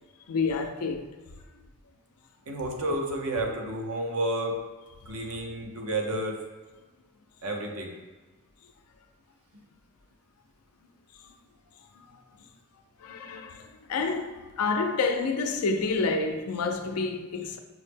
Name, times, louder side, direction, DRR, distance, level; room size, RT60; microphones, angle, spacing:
voice 1, 0.3-1.1 11.2-11.3 11.9-12.1 12.4-12.5 13.0-17.6, left 4 dB, 90° left, 0.5 m, -29 dB
voice 2, 2.5-4.6 5.1-6.4 7.4-8.0, right 1 dB, 80° right, 0.7 m, -31 dB
6.1 x 2.1 x 3.3 m
head